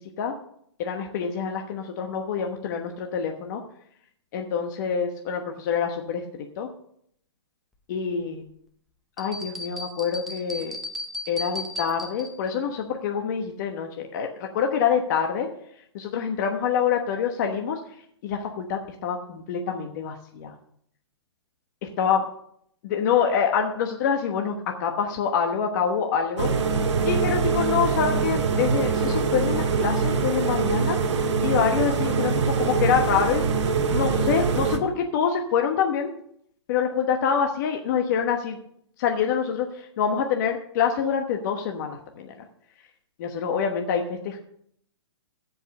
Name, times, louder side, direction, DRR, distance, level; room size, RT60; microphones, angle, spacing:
voice 1, 0.8-3.6 4.3-6.2 6.6-6.7 7.9-8.4 9.2-10.8 11.3-15.5 15.9-17.8 18.2-20.5 21.8-22.2 22.8-26.5 27.0-33.4 33.9-36.1 36.7-38.6 39.0-42.3 43.2-44.4, left 7 dB, 40° left, 3 dB, 1.1 m, -26 dB
sound 1, 9.2-12.5, left 1 dB, ahead, 0.8 m, -35 dB
sound 2, 26.4-34.8, right 5 dB, 75° right, 1.7 m, -24 dB
15.0 x 5.4 x 6.4 m, 0.68 s
hypercardioid pair, 160°, 15 cm